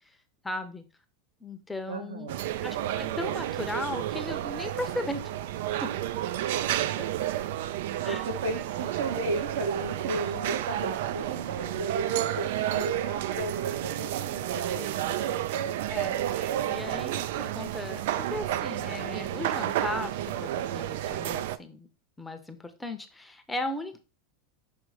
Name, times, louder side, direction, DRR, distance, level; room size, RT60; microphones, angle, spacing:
voice 1, 0.4-0.9 1.4-2.3 2.6-5.2 5.8-5.9 7.0-7.1 8.0-8.2 15.9-21.9 22.2-24.0, left 2 dB, 5° left, 7 dB, 0.7 m, -36 dB
voice 2, 1.9-2.4 6.4-6.5 7.9-15.2, right 3 dB, 90° right, 3 dB, 1.8 m, -34 dB
sound 1, 2.3-21.6, right 12 dB, 70° right, 0.4 m, -31 dB
6.3 x 3.1 x 4.8 m, 0.33 s
supercardioid pair, 140°, 0 cm